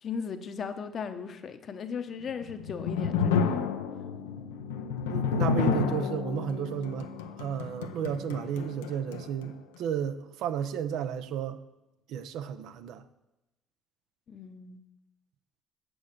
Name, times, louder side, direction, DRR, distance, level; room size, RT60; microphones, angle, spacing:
voice 1, 0.0-3.6 14.3-14.8, left 6 dB, 50° left, 0.9 m, -37 dB
sound 1, 2.3-9.5, left 6 dB, 85° left, 0.6 m, -30 dB
voice 2, 5.1-7.1 7.4-11.6 12.1-13.0, right 8 dB, 70° right, 0.5 m, -33 dB
7.3 x 6.3 x 6.5 m
hypercardioid pair, 60°, 0 cm